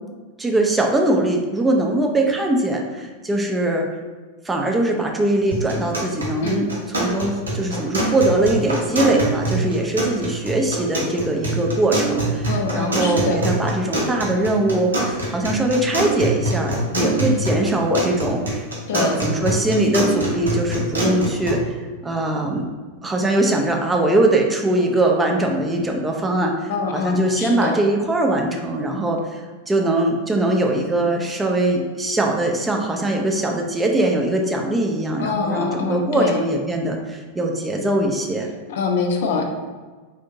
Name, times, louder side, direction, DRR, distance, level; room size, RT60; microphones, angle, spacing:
voice 1, 0.4-3.9 4.4-6.7 7.0-18.6 18.9-21.8 22.0-22.6 23.0-29.4 29.7-38.5, right 1 dB, 10° right, 1 dB, 0.4 m, -21 dB
sound 1, 5.5-21.5, right 2 dB, 75° right, 0.7 m, -25 dB
voice 2, 12.5-13.4 18.9-19.2 26.7-27.7 35.2-36.4 38.7-39.6, left 4 dB, 55° left, 2 dB, 0.4 m, -24 dB
3.4 x 2.6 x 2.6 m, 1.4 s
figure-of-eight pair, 90°, 0 cm